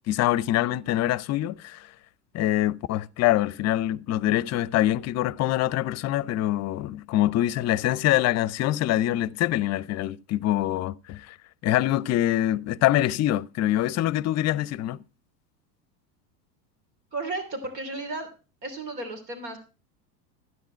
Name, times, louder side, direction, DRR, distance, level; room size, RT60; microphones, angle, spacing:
voice 1, 0.1-1.9 2.3-11.4 11.6-15.0, left 14 dB, 35° left, 0.5 m, -24 dB
voice 2, 17.1-18.3 18.6-19.6, right 2 dB, 80° right, 3.3 m, -33 dB
12.5 x 9.5 x 4.4 m
hypercardioid pair, 90°, 49 cm